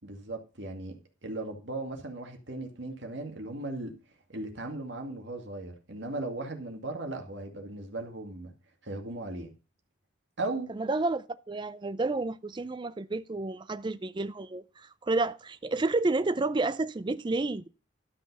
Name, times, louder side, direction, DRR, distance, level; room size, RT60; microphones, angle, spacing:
voice 1, 0.0-3.9 4.3-8.5 8.8-9.5 10.4-10.7, right 2 dB, 65° right, 2.3 m, -37 dB
voice 2, 10.7-17.7, right 2 dB, 25° right, 0.4 m, -30 dB
12.5 x 5.7 x 5.4 m
head